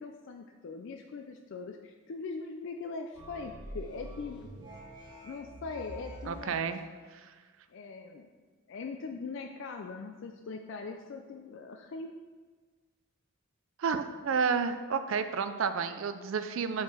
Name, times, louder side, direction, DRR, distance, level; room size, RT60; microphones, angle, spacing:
voice 1, 0.0-4.5 5.2-6.6 7.7-8.3 8.7-12.1, left 4 dB, 60° left, 4 dB, 0.3 m, -41 dB
sound 1, 3.1-6.5, right 1 dB, 20° right, 1.5 m, -46 dB
voice 2, 6.3-6.8 7.1-7.2 13.8-16.8, right 5 dB, 65° right, 10 dB, 0.4 m, -31 dB
4.8 x 4.5 x 5.5 m, 1.4 s
head